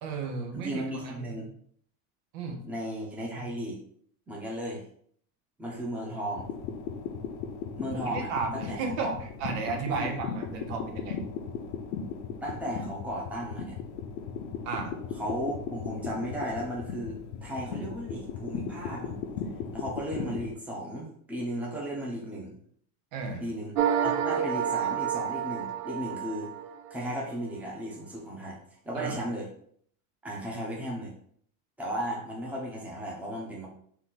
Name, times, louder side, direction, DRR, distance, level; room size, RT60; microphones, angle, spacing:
voice 1, 0.0-1.1 2.3-2.6 7.9-11.2 14.6-14.9 23.1-23.4 28.9-29.2, right 4 dB, 65° right, 3 dB, 1.0 m, -33 dB
voice 2, 0.5-1.5 2.6-3.8 4.3-4.8 5.6-6.5 7.7-9.1 9.9-10.2 12.4-13.8 15.2-19.2 19.7-22.5 23.4-26.5 26.9-28.6 28.8-29.5 30.2-31.1 31.8-33.7, equal, 5° right, -4 dB, 0.9 m, -35 dB
sound 1, 6.4-20.5, left 6 dB, 75° left, 0.8 m, -37 dB
sound 2, 23.7-27.1, right 9 dB, 90° right, 0.7 m, -29 dB
4.2 x 2.9 x 4.1 m, 0.63 s
supercardioid pair, 145°, 44 cm